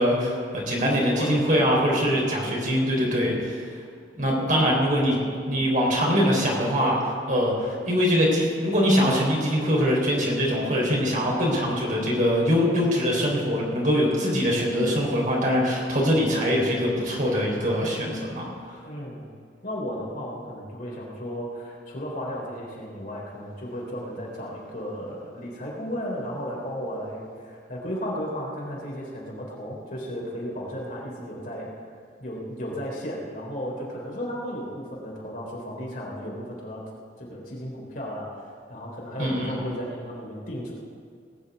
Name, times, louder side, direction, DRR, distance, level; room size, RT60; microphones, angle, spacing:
voice 1, 0.0-3.7 4.1-5.2 5.4-18.4 39.2-39.6, equal, 45° right, -2 dB, 4.0 m, -23 dB
voice 2, 0.8-1.4 4.2-4.7 18.8-19.3 19.6-31.7 32.2-36.8 37.2-38.3 38.7-40.8, equal, 50° left, -3 dB, 3.6 m, -34 dB
19.5 x 6.7 x 8.3 m, 2.1 s
head